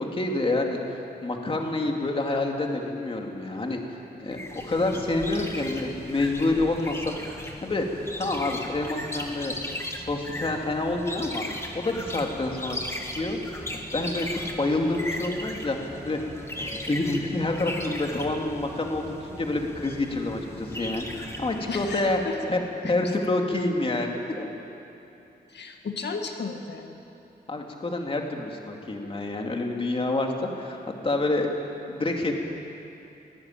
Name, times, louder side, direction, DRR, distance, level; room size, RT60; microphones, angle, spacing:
voice 1, 0.0-7.2 7.4-9.6 9.9-13.4 13.7-22.2 22.5-24.5 27.5-31.5 31.9-32.3, left 2 dB, 30° left, 1 dB, 2.4 m, -28 dB
sound 1, 4.3-22.3, left 1 dB, 15° left, 1.9 m, -37 dB
voice 2, 21.7-22.3 25.5-27.0, left 4 dB, 80° left, 3 dB, 1.7 m, -34 dB
23.0 x 18.5 x 9.1 m, 2.8 s
wide cardioid pair, 180°, 17 cm